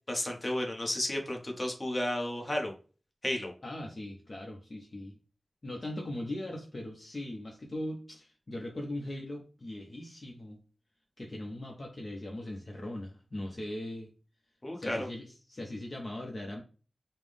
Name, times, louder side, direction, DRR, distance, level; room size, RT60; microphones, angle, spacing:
voice 1, 0.1-2.7 3.2-3.5 14.6-15.1, left 1 dB, 25° left, 1 dB, 0.9 m, -32 dB
voice 2, 3.6-5.1 5.6-10.6 11.2-14.1 14.8-16.6, left 1 dB, 45° left, 0 dB, 0.7 m, -40 dB
5.5 x 2.0 x 3.4 m, 0.37 s
wide cardioid pair, 90°, 0 cm